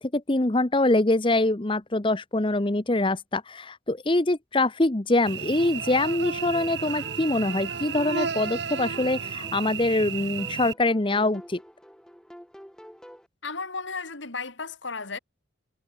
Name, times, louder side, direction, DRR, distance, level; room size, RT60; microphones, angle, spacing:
voice 1, 0.0-11.6, left 2 dB, 25° left, 0.9 m, -24 dB
Cricket / Buzz, 5.3-10.7, right 6 dB, 60° right, 1.0 m, -33 dB
sound 1, 5.6-13.3, equal, 5° left, 6.7 m, -49 dB
voice 2, 13.4-15.2, left 4 dB, 70° left, 2.9 m, -34 dB
head